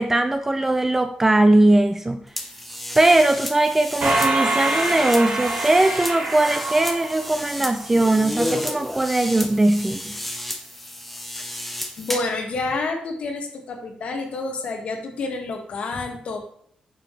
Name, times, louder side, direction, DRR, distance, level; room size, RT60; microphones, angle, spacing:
voice 1, 0.0-2.2 3.0-10.2, right 2 dB, 15° right, 8 dB, 0.4 m, -19 dB
sound 1, 2.4-12.4, left 1 dB, 5° left, 0.9 m, -32 dB
sound 2, 4.0-7.7, right 2 dB, 60° right, 3.3 m, -25 dB
voice 2, 12.0-16.4, left 3 dB, 55° left, 2 dB, 1.9 m, -29 dB
9.7 x 7.0 x 3.3 m, 0.66 s
wide cardioid pair, 140°, 2 cm